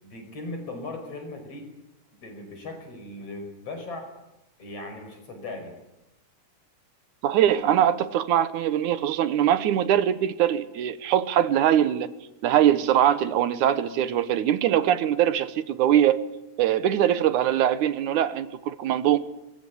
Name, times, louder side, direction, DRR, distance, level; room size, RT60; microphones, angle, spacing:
voice 1, 0.0-1.7 2.2-4.1 4.6-5.7, left 2 dB, 50° left, 6.3 m, -38 dB
voice 2, 7.2-12.1 12.4-16.2 16.6-19.2, right 10 dB, 80° right, 2.5 m, -22 dB
23.5 x 21.5 x 8.4 m
omnidirectional pair, 3.5 m